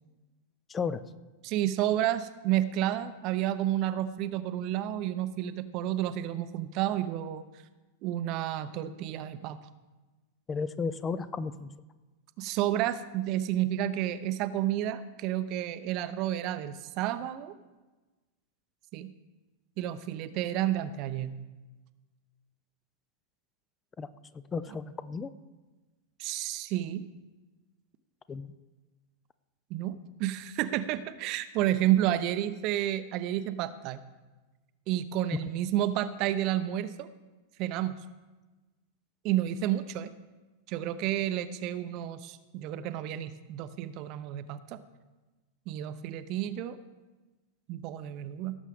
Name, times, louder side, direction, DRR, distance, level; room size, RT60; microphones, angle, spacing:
voice 1, 0.7-1.0 10.5-11.7 24.0-24.1 24.3-25.3 28.3-28.5, left 5 dB, 20° left, 14 dB, 0.5 m, -33 dB
voice 2, 1.4-7.4 8.0-9.6 12.4-17.5 18.9-19.1 19.8-21.4 26.2-27.0 29.7-34.0 34.9-37.1 37.6-38.0 39.2-40.1 40.7-44.8 45.7-46.8 47.7-48.6, right 12 dB, 45° right, 13 dB, 0.7 m, -30 dB
17.0 x 7.3 x 3.6 m, 1.2 s
figure-of-eight pair, 95°, 0 cm